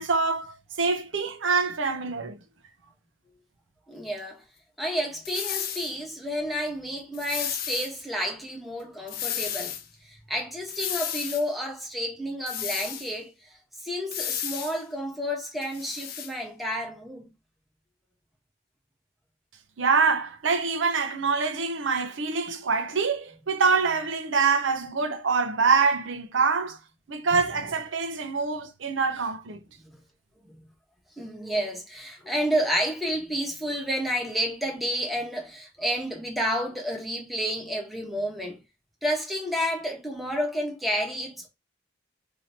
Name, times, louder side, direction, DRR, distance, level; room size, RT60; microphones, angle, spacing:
voice 1, 0.0-2.4 19.8-26.8 27.1-29.6, right 5 dB, 80° right, 0.7 m, -25 dB
voice 2, 3.9-4.4 4.8-9.7 10.0-13.6 13.8-17.3 29.8-30.0 30.4-30.6 31.2-38.6 39.0-41.5, equal, ahead, 1.0 m, -30 dB
sound 1, 5.2-5.9 7.1-7.9 9.1-9.8 10.7-11.4 12.5-13.1 14.1-14.8 15.6-16.3, left 9 dB, 50° left, 0.6 m, -33 dB
2.8 x 2.7 x 4.2 m
head